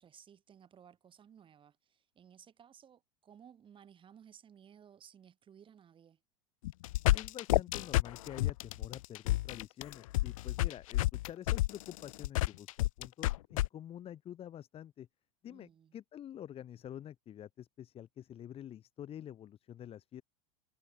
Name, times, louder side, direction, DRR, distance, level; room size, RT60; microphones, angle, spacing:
voice 1, 0.0-6.2 15.5-16.0, right 8 dB, 30° right, 7.8 m, -58 dB
sound 1, 6.6-13.7, left 17 dB, 80° left, 0.5 m, -30 dB
voice 2, 7.1-15.1 15.4-20.2, left 10 dB, 35° left, 2.2 m, -48 dB
hypercardioid pair, 105°, 17 cm